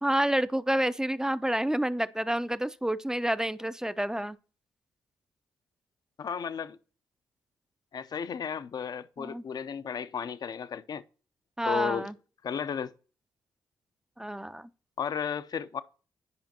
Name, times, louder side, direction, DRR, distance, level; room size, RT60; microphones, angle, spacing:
voice 1, 0.0-4.4 9.2-9.4 11.6-12.1 14.2-14.7, right 1 dB, 5° right, 0.4 m, -29 dB
voice 2, 6.2-6.8 7.9-11.0 11.6-12.1 12.4-12.9 15.0-15.8, left 7 dB, 50° left, 0.5 m, -34 dB
9.5 x 5.1 x 2.9 m
supercardioid pair, 55°, 9 cm